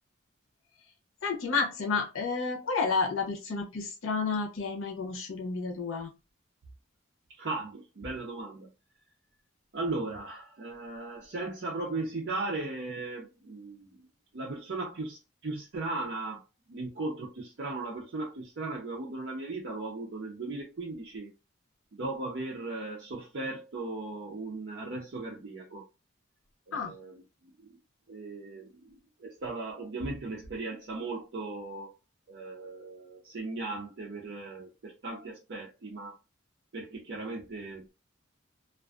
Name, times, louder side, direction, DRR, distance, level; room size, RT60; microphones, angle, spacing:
voice 1, 1.2-6.1 26.7-26.9, left 4 dB, 80° left, 0.7 m, -31 dB
voice 2, 7.4-8.7 9.7-14.0 14.3-16.4 16.7-21.3 21.9-25.9 26.7-27.2 28.1-31.9 32.3-36.2 36.7-37.9, right 2 dB, 55° right, 0.5 m, -37 dB
2.4 x 2.3 x 2.3 m
head